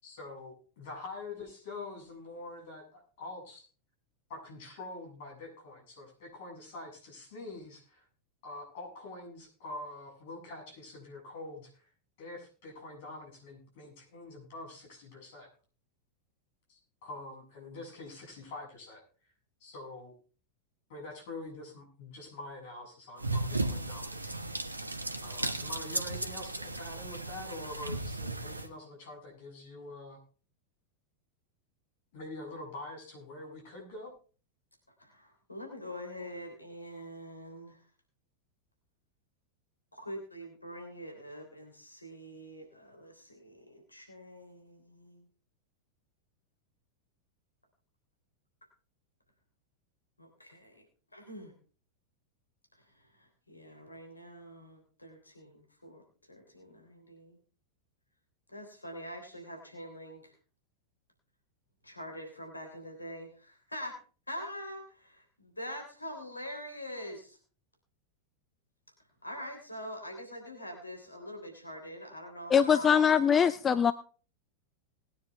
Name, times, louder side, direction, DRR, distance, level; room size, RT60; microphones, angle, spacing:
voice 1, 0.0-3.7 4.3-8.1 8.4-11.9 12.2-15.5 16.7-19.0 19.6-20.1 20.9-24.4 25.2-30.2 32.1-34.1, left 2 dB, 50° left, 0 dB, 7.6 m, -45 dB
sound 1, 23.2-28.7, right 2 dB, 80° right, 1.2 m, -35 dB
voice 2, 35.0-37.8 39.9-45.3 50.2-50.8 51.1-51.5 52.9-56.0 56.3-57.4 58.5-60.3 61.8-64.0 64.3-67.4 69.2-73.1, equal, 85° left, 3 dB, 3.4 m, -44 dB
voice 3, 72.5-73.9, left 7 dB, 20° left, 13 dB, 0.5 m, -23 dB
20.0 x 9.7 x 3.5 m, 0.39 s
figure-of-eight pair, 90°, 0 cm